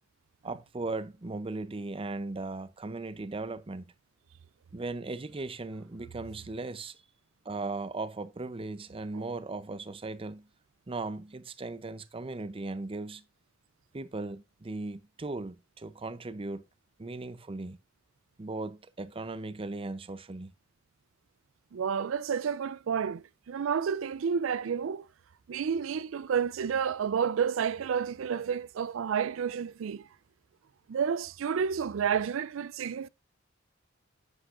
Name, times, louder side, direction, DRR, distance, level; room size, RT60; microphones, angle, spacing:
voice 1, 0.4-3.9 4.7-7.0 7.4-10.5 10.9-13.2 13.9-16.6 17.0-17.8 18.4-20.5, right 3 dB, 30° right, 0.6 m, -37 dB
voice 2, 21.7-25.1 25.5-30.1 30.9-33.1, right 7 dB, 85° right, 0.4 m, -30 dB
9.8 x 8.3 x 2.5 m
head